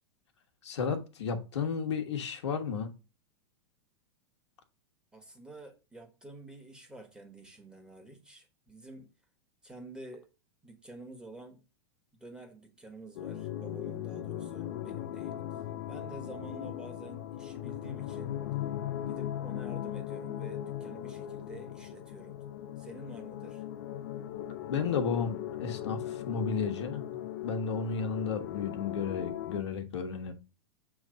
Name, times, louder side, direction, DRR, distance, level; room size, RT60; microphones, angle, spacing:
voice 1, 0.6-2.9 24.7-30.3, left 5 dB, 85° left, 1.2 m, -33 dB
voice 2, 5.1-9.1 9.6-10.3 10.6-11.6 12.1-15.4 15.9-18.4 19.1-22.4 22.8-23.6, right 2 dB, 5° right, 1.4 m, -49 dB
sound 1, 13.2-29.6, left 11 dB, 65° left, 0.6 m, -38 dB
7.1 x 3.2 x 5.0 m
hypercardioid pair, 125°, 14 cm